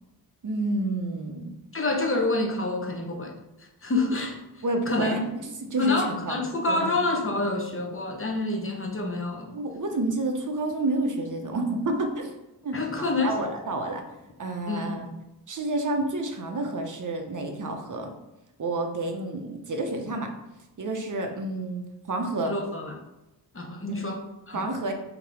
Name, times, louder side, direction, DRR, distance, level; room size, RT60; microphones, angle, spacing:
voice 1, 0.4-1.5 4.6-5.2 5.6-6.4 6.7-6.9 9.5-12.4 12.6-14.0 14.4-15.1 15.5-18.1 18.6-20.3 20.8-22.5 23.9-24.1 24.5-24.9, right 2 dB, 45° right, 4 dB, 0.8 m, -29 dB
voice 2, 1.7-3.3 3.8-5.2 5.8-9.5 12.7-13.5 14.7-15.0 22.4-23.0 23.5-24.6, left 2 dB, 30° left, 2 dB, 0.8 m, -28 dB
3.8 x 2.9 x 4.7 m, 0.95 s
wide cardioid pair, 80°, 43 cm